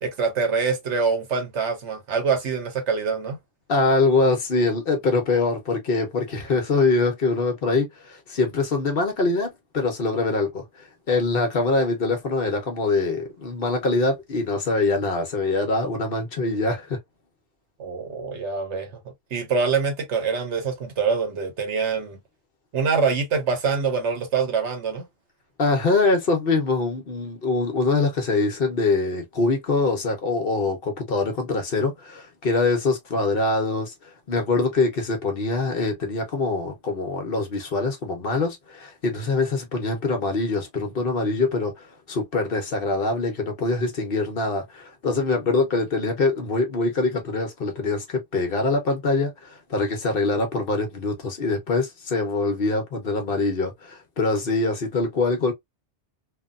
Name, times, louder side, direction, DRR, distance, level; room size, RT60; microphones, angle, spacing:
voice 1, 0.0-3.4 17.8-19.0 19.3-22.2 22.7-25.1, right 5 dB, 90° right, 1.3 m, -25 dB
voice 2, 3.7-17.0 25.6-33.9 34.3-55.5, left 3 dB, 55° left, 1.0 m, -24 dB
3.2 x 2.2 x 2.4 m
omnidirectional pair, 1.2 m